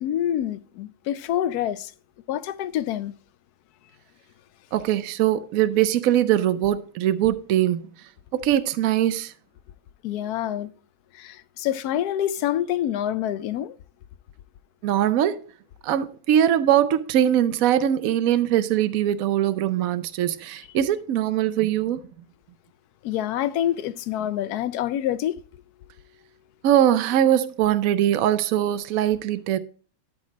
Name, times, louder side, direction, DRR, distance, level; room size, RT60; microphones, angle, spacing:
voice 1, 0.0-1.9 2.3-3.1 10.0-10.7 11.1-13.8 23.0-25.4, left 11 dB, 90° left, 1.1 m, -26 dB
voice 2, 4.7-7.8 8.3-9.3 14.8-15.4 15.8-22.0 26.6-29.6, right 11 dB, 70° right, 1.1 m, -21 dB
12.5 x 4.3 x 4.9 m
omnidirectional pair, 1.6 m